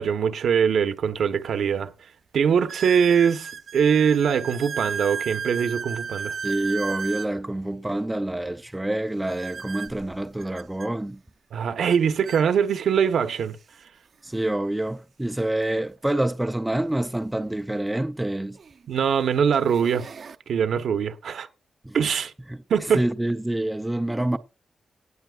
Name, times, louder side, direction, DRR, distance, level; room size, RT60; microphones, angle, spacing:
voice 1, 0.0-1.9 2.3-6.3 11.5-13.6 18.9-20.1 20.5-21.5 21.9-22.3 22.7-23.0, right 7 dB, 80° right, 1.0 m, -22 dB
sound 1, 1.0-1.1 1.7-1.8 2.7-7.3 9.3-10.9 11.9-12.0 12.3-12.4 13.2-13.3 15.5-15.6 17.7-17.8 18.6-18.9 19.4-20.4, right 6 dB, 50° right, 0.6 m, -34 dB
voice 2, 6.4-11.2 14.2-18.6 21.8-24.4, right 1 dB, 10° right, 0.4 m, -27 dB
17.5 x 8.8 x 2.4 m
wide cardioid pair, 165°, 0 cm